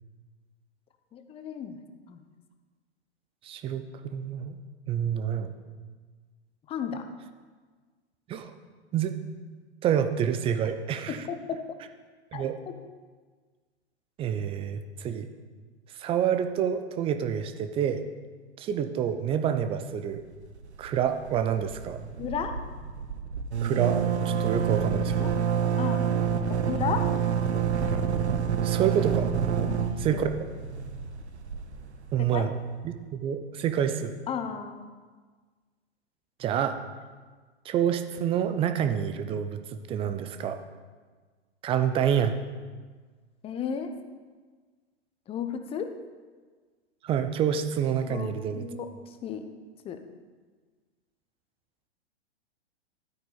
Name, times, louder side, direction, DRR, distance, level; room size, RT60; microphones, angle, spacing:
voice 1, 1.1-1.8 2.1-2.2 6.7-7.0 11.1-11.6 12.3-12.7 22.2-22.5 25.2-25.3 25.8-26.0 26.5-27.0 29.6-30.3 32.2-32.5 34.3-34.9 43.4-43.9 45.3-45.9 48.0-48.9 49.2-49.4 49.8-50.0, left 7 dB, 15° left, 8 dB, 0.8 m, -34 dB
voice 2, 3.4-4.6 4.9-5.5 8.3-8.5 8.9-9.2 9.8-11.2 12.3-12.6 14.2-15.3 16.0-18.0 18.6-20.2 20.8-22.0 23.6-25.3 28.6-29.3 30.0-30.3 32.1-32.5 32.8-34.1 36.4-36.8 37.6-39.6 39.9-40.6 41.6-42.3 47.0-48.7, right 9 dB, 15° right, 8 dB, 0.5 m, -27 dB
sound 1, 20.4-21.0 21.3-21.4 21.6-32.3, right 7 dB, 75° right, 1.0 m, -28 dB
12.5 x 8.7 x 4.0 m, 1.5 s
figure-of-eight pair, 110°, 34 cm